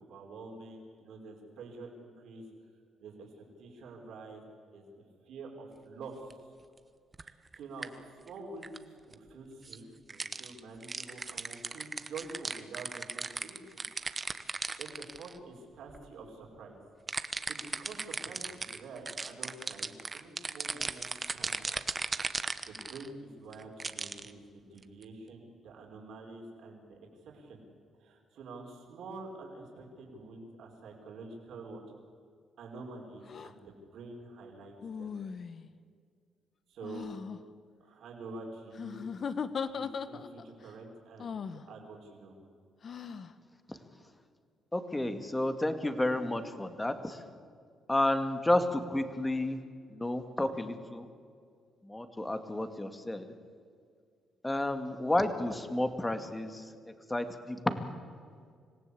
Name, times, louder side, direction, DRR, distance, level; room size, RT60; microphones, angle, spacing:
voice 1, 0.0-2.4 3.0-6.5 7.2-13.8 14.8-16.7 17.2-21.8 22.3-22.4 22.7-27.6 28.0-31.8 32.6-35.1 36.7-37.1 37.8-39.1 39.6-42.4, right 3 dB, 75° right, 0 dB, 4.9 m, -47 dB
sound 1, 6.3-6.4 7.1-7.6 7.8-7.9 8.3-8.4 8.6-8.8 9.1-9.2 9.6-9.8 10.1-15.4 15.9-16.0 17.1-23.1 23.5-24.3 24.8-25.0, right 4 dB, 30° right, 1.1 m, -37 dB
sound 2, 33.3-33.5 34.8-35.7 36.8-37.4 38.7-40.5 41.2-41.6 42.8-43.3, left 6 dB, 50° left, 1.2 m, -38 dB
voice 2, 44.7-47.2 47.9-49.6 49.9-51.1 51.8-53.3 54.4-57.9, left 1 dB, 15° left, 8 dB, 2.1 m, -31 dB
26.5 x 17.0 x 8.5 m, 2.1 s
cardioid pair, 90°, 0 cm